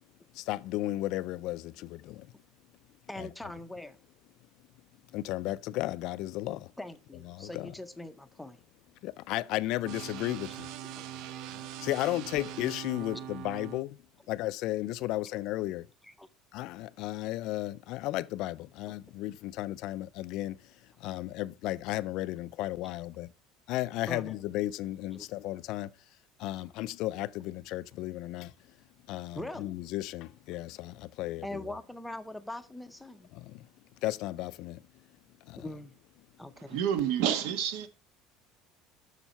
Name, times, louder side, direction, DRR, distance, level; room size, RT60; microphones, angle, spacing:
voice 1, 0.3-2.3 3.2-3.3 5.1-6.7 7.2-7.7 9.0-10.7 11.8-14.0 14.3-15.9 16.5-20.6 21.0-23.3 23.7-25.9 26.4-28.5 29.1-31.7 33.3-33.7 34.0-34.8 35.5-35.6, left 16 dB, 50° left, 0.4 m, -34 dB
voice 2, 3.1-4.0 6.8-8.6 16.0-16.3 24.1-24.4 25.1-25.3 26.6-26.7 29.4-29.7 31.4-33.3 35.6-35.9 36.4-36.8, left 1 dB, 5° left, 0.6 m, -42 dB
sound 1, 9.9-13.8, right 10 dB, 50° right, 0.5 m, -42 dB
voice 3, 36.7-37.9, right 9 dB, 75° right, 1.3 m, -28 dB
7.2 x 6.5 x 5.4 m
cardioid pair, 180°, 0 cm